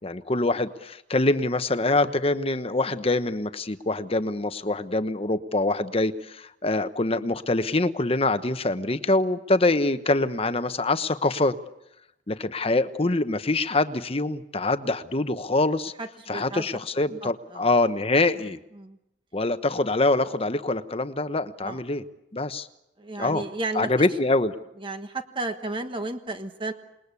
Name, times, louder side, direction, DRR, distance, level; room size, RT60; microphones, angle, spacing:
voice 1, 0.0-11.6 12.3-15.9 16.3-18.6 19.3-22.0 22.3-22.7 23.2-23.4 23.7-24.6, left 2 dB, 35° left, 11 dB, 1.1 m, -24 dB
voice 2, 16.0-16.7 17.2-17.7 18.7-19.0 21.6-21.8 23.0-24.1 24.8-26.7, right 2 dB, 30° right, 7 dB, 1.4 m, -33 dB
28.0 x 21.0 x 8.4 m, 0.87 s
head